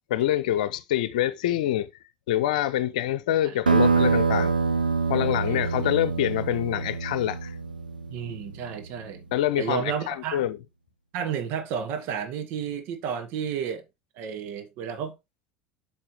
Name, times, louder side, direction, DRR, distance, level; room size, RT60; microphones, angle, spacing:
voice 1, 0.1-1.9 2.3-4.5 5.1-7.5 9.3-10.6, left 12 dB, 65° left, 0.7 m, -26 dB
sound 1, 3.7-8.8, right 5 dB, 85° right, 0.5 m, -25 dB
voice 2, 8.1-9.2 9.6-10.4 11.1-13.8 14.2-15.2, right 8 dB, 55° right, 1.6 m, -32 dB
8.6 x 5.5 x 3.1 m
figure-of-eight pair, 70°, 5 cm